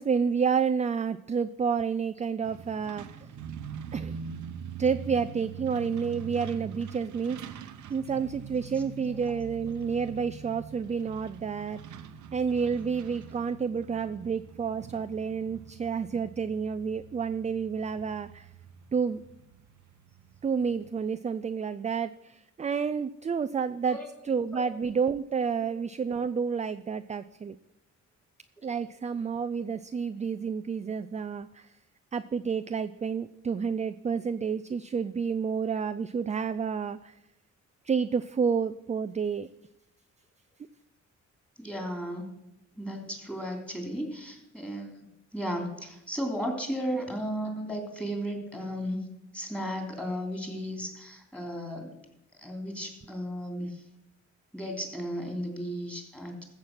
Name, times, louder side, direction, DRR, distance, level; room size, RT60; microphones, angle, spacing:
voice 1, 0.0-3.1 3.9-4.2 4.8-7.6 7.9-11.8 12.3-18.5 18.9-19.2 20.4-24.0 24.2-27.6 28.6-31.7 32.1-37.2 37.8-39.5, right 6 dB, 25° right, 11 dB, 0.4 m, -30 dB
Truck, 2.4-20.9, right 7 dB, 80° right, 0.9 m, -44 dB
voice 2, 41.6-42.3 42.7-49.0 49.3-52.0 52.4-53.8 54.5-56.4, equal, 5° left, 2 dB, 3.1 m, -35 dB
14.0 x 7.3 x 6.0 m, 0.88 s
cardioid pair, 100°, 30 cm